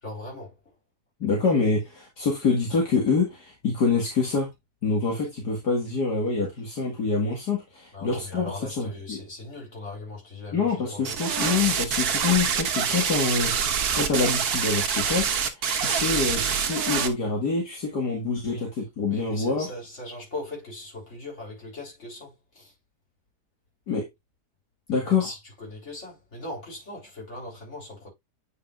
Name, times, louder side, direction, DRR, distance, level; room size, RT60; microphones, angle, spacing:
voice 1, 0.0-0.6 7.9-11.3 18.5-18.7 19.1-22.7 25.0-28.1, left 2 dB, 40° left, 4.0 m, -39 dB
voice 2, 1.2-4.5 4.8-9.2 10.5-19.7 23.9-24.1 24.9-25.3, left 4 dB, 70° left, 2.5 m, -26 dB
sound 1, 11.0-17.1, right 7 dB, 65° right, 1.5 m, -25 dB
8.5 x 5.3 x 2.5 m
omnidirectional pair, 1.8 m